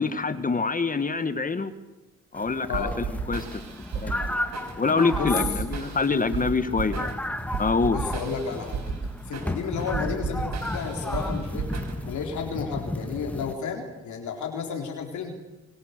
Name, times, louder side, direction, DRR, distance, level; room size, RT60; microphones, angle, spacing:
voice 1, 0.0-1.7 2.3-3.4 3.9-4.4 4.8-7.1 7.6-8.0, left 4 dB, 30° left, 11 dB, 1.6 m, -26 dB
sound 1, 2.3-13.5, left 1 dB, 5° left, 1.8 m, -34 dB
sound 2, 2.7-12.3, right 5 dB, 60° right, 5.8 m, -34 dB
voice 2, 7.9-8.8 9.2-11.7 12.1-15.3, left 6 dB, 70° left, 2 dB, 4.1 m, -32 dB
24.5 x 24.5 x 6.7 m, 1.1 s
cardioid pair, 90°, 30 cm